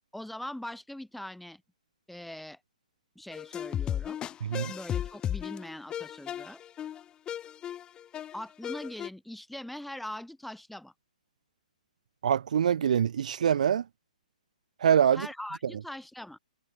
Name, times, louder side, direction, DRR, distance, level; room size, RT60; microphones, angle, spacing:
voice 1, 0.1-1.6 2.1-2.6 3.2-4.2 4.7-6.6 8.3-10.9 15.1-16.4, left 1 dB, ahead, 7.1 m, -41 dB
sound 1, 3.3-9.1, left 10 dB, 20° left, 7.1 m, -35 dB
voice 2, 4.4-4.7 12.2-13.8 14.8-15.3, right 8 dB, 65° right, 1.1 m, -24 dB
hypercardioid pair, 135°, 4 cm